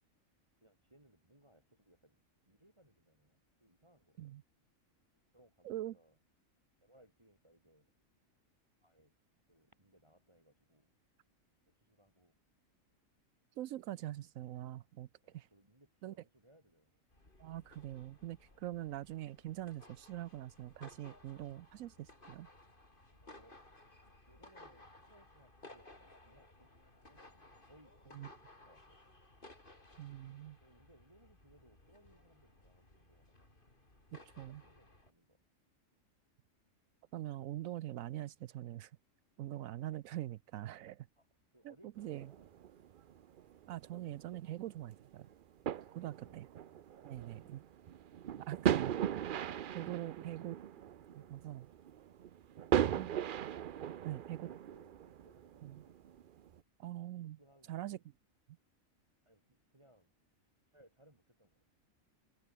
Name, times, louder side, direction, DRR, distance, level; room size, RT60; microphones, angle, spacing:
voice 1, 0.6-4.4 5.3-6.2 6.8-7.9 8.8-9.1 9.5-10.9 11.6-12.4 15.2-17.0 18.5-18.7 23.2-23.6 24.3-29.2 30.6-33.5 34.1-35.4 40.7-40.9 41.2-42.7 45.9-46.4 46.9-47.8 51.1-51.4 53.9-56.2 57.2-58.0 59.2-60.1 60.7-61.6, right 1 dB, 20° right, 4.4 m, -67 dB
voice 2, 5.6-6.0 13.6-15.5 16.0-16.1 17.4-22.5 28.1-28.3 30.0-30.6 34.4-34.6 37.1-38.9 39.4-41.1 41.6-42.3 43.7-45.3 45.9-46.5 47.0-47.6 48.4-49.2 49.7-50.6 51.2-51.7 53.0-53.1 54.0-54.5 55.6-55.8 56.8-57.4 57.7-58.0, right 13 dB, 80° right, 1.0 m, -43 dB
sound 1, 17.1-35.1, left 2 dB, 40° left, 4.5 m, -59 dB
sound 2, 42.0-56.6, right 10 dB, 55° right, 0.6 m, -39 dB
omnidirectional pair, 1.4 m